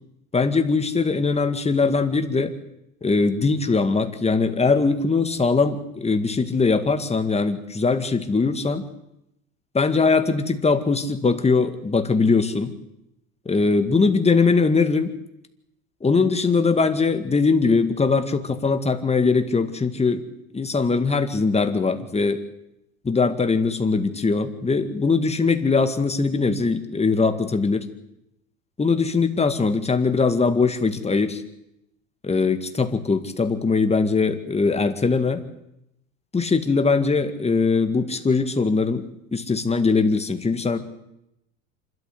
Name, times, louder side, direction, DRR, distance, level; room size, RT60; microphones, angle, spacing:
voice 1, 0.3-2.5 3.0-8.8 9.7-12.7 13.5-15.1 16.0-20.2 20.5-22.4 23.0-27.9 28.8-31.4 32.2-35.4 36.3-39.1 39.3-40.8, left 4 dB, 15° left, 9 dB, 2.0 m, -21 dB
26.5 x 12.5 x 8.0 m, 0.82 s
hypercardioid pair, 90°, 41 cm